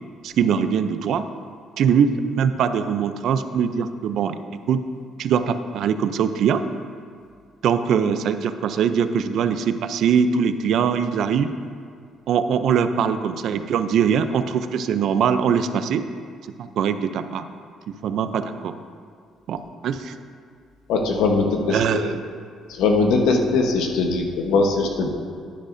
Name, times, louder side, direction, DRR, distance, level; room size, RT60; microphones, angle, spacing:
voice 1, 0.2-1.2 1.8-4.4 4.7-4.8 5.2-6.6 7.6-11.5 12.3-16.1 16.6-17.4 17.9-18.7 19.5-20.1 21.7-22.2, right 7 dB, 65° right, 10 dB, 0.4 m, -22 dB
voice 2, 20.9-22.1 22.7-25.1, left 3 dB, 90° left, 3 dB, 1.0 m, -20 dB
10.5 x 9.9 x 2.6 m, 2.1 s
cardioid pair, 145°, 0 cm